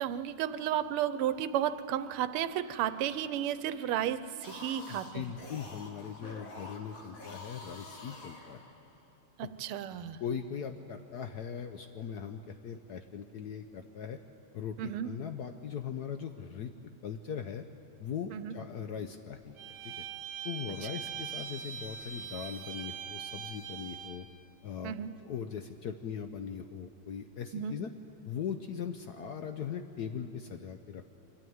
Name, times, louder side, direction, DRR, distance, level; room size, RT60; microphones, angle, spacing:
voice 1, 0.0-5.2 9.4-10.2 14.8-15.1 18.3-18.5 24.8-25.1 27.5-27.8, right 10 dB, 90° right, 13 dB, 1.6 m, -33 dB
sound 1, 4.3-9.0, left 2 dB, 40° left, 2.1 m, -48 dB
voice 2, 4.9-8.6 10.2-14.2 14.5-16.7 17.0-17.6 18.0-19.7 20.4-24.3 24.6-24.9 25.2-27.9 28.3-31.1, left 7 dB, 70° left, 7 dB, 0.9 m, -40 dB
Bowed string instrument, 19.6-24.2, right 8 dB, 65° right, 1.9 m, -42 dB
24.0 x 12.5 x 9.4 m, 3.0 s
omnidirectional pair, 2.4 m